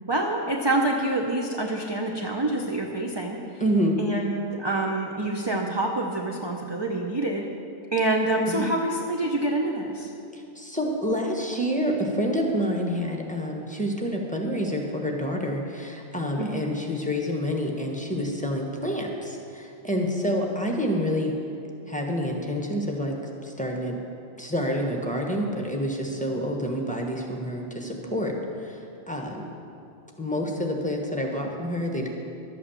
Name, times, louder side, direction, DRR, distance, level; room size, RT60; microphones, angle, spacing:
voice 1, 0.1-3.4 4.0-7.5 7.9-10.1 16.4-16.6, right 2 dB, 25° right, 1 dB, 0.7 m, -26 dB
voice 2, 3.6-4.0 8.5-8.7 10.3-21.3 21.9-23.1 23.4-24.0 24.4-28.3 28.6-29.5 30.2-32.1, equal, 5° left, 0 dB, 1.3 m, -28 dB
12.5 x 8.6 x 7.1 m, 2.6 s
omnidirectional pair, 1.2 m